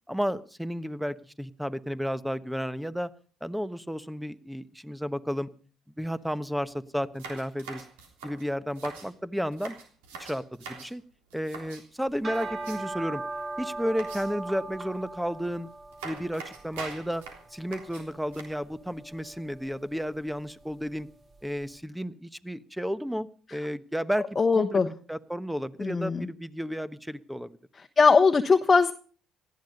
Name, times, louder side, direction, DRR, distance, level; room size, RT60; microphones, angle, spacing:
voice 1, 0.1-3.1 3.4-5.5 6.0-7.8 8.2-9.7 10.2-11.0 11.3-13.2 13.6-15.7 16.0-17.2 17.5-21.1 21.4-24.3 24.5-27.5, equal, 5° right, 14 dB, 1.2 m, -32 dB
sound 1, 6.2-6.3 6.7-6.8 7.2-9.1 9.5-10.9 11.3-11.9 12.3-13.0 14.0-14.6 15.4-15.6 15.9-18.4, right 4 dB, 85° right, 3.5 m, -43 dB
sound 2, 12.1-21.4, right 2 dB, 35° right, 2.9 m, -40 dB
voice 2, 24.4-24.9 25.8-26.3 28.0-28.9, left 4 dB, 35° left, 6 dB, 1.2 m, -20 dB
18.5 x 14.0 x 5.4 m, 0.41 s
hypercardioid pair, 55°, 0 cm